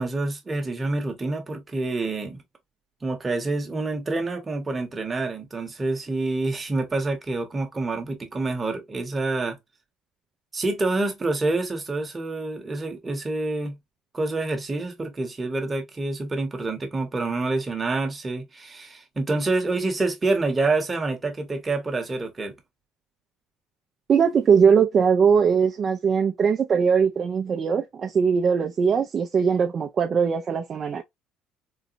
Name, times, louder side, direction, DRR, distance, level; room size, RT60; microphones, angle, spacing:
voice 1, 0.0-2.4 3.0-9.6 10.5-13.8 14.1-22.5, right 2 dB, 15° right, 0.9 m, -27 dB
voice 2, 24.1-31.0, right 6 dB, 35° right, 0.3 m, -20 dB
3.9 x 2.1 x 2.5 m
cardioid pair, 140°, 0 cm